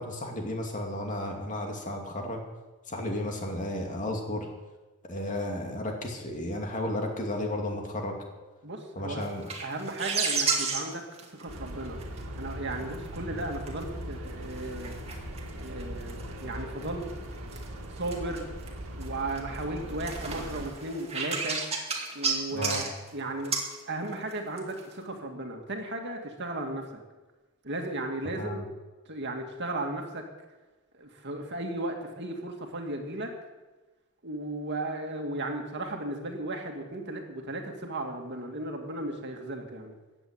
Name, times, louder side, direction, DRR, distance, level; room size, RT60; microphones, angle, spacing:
voice 1, 0.0-2.4 2.9-4.5 5.1-8.1 8.9-9.5 13.2-13.4 22.5-22.9 28.2-28.6, left 1 dB, 35° left, 1 dB, 2.6 m, -33 dB
voice 2, 8.6-9.3 9.6-12.0 12.4-14.9 15.5-17.1 17.9-18.5 19.0-21.6 22.1-23.5 23.8-27.0 27.6-28.6 29.1-30.2 30.9-33.3 34.2-40.0, right 2 dB, 55° right, 3 dB, 2.2 m, -35 dB
sound 1, 9.2-12.2 12.5-13.8 14.3-16.4 16.8-18.7 19.0-19.6 19.9-23.1 23.4-23.7 24.3-24.9, right 4 dB, 30° right, 2.4 m, -32 dB
sound 2, 11.5-20.7, equal, 75° right, 1.9 m, -40 dB
15.0 x 8.1 x 8.9 m, 1.2 s
head